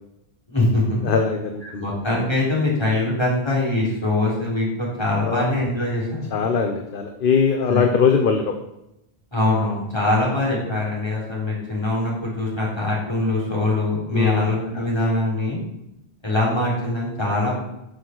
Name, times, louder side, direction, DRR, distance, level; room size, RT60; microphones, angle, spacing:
voice 1, 0.5-1.1 1.6-6.3 7.7-7.8 9.3-15.6 16.2-17.5, left 2 dB, 25° left, -5 dB, 3.9 m, -23 dB
voice 2, 1.0-1.9 5.2-5.4 6.3-8.5 14.1-14.4, left 5 dB, 55° left, 4 dB, 1.0 m, -21 dB
9.5 x 6.5 x 6.1 m, 0.87 s
omnidirectional pair, 1.1 m